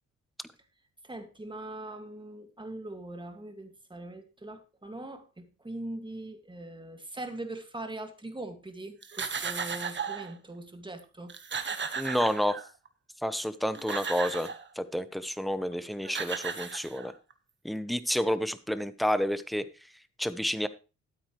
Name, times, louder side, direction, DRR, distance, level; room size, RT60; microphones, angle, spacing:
voice 1, 1.0-11.4, right 2 dB, 15° right, 6 dB, 2.1 m, -41 dB
sound 1, 9.0-10.3 11.0-11.1 11.3-12.9 13.5-14.7 15.7-15.8 16.1-17.3, right 6 dB, 40° right, 1.3 m, -35 dB
voice 2, 12.0-12.6 13.2-14.5 14.8-17.1 17.6-19.7 20.2-20.7, equal, ahead, 13 dB, 0.9 m, -30 dB
12.5 x 8.8 x 3.2 m, 0.31 s
cardioid pair, 85°, 30 cm